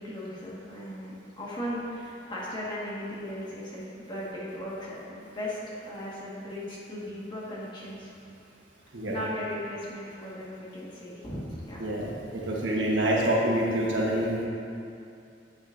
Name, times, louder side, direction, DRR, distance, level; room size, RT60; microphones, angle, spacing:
voice 1, 0.0-8.1 9.0-12.1 12.7-13.4, equal, 25° left, -6 dB, 1.6 m, -37 dB
voice 2, 11.8-14.3, right 1 dB, 85° right, -4 dB, 1.4 m, -26 dB
9.4 x 8.6 x 2.6 m, 2.5 s
head